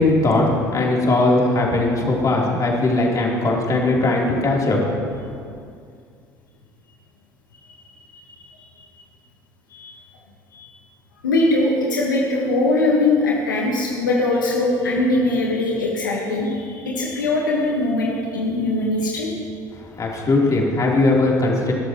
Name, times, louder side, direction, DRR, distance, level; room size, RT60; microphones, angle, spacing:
voice 1, 0.0-4.8 20.0-21.7, left 2 dB, 35° left, -3 dB, 3.5 m, -19 dB
voice 2, 8.4-8.9 9.7-9.9 10.5-10.7 11.2-19.3, left 2 dB, 85° left, -3 dB, 1.5 m, -21 dB
20.5 x 12.5 x 3.1 m, 2.3 s
figure-of-eight pair, 60°, 10 cm